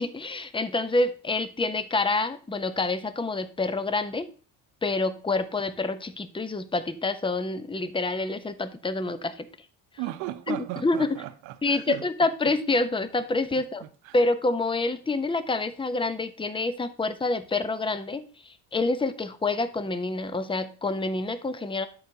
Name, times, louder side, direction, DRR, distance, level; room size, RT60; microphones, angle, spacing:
voice 1, 0.0-4.3 4.8-9.5 10.5-10.6 10.8-11.1 11.6-13.8 14.1-21.9, left 3 dB, 10° left, 0.9 m, -27 dB
voice 2, 10.0-12.0 12.5-12.6 13.8-14.1, right 15 dB, 80° right, 0.9 m, -36 dB
12.0 x 4.8 x 2.8 m
supercardioid pair, 80°, 45 cm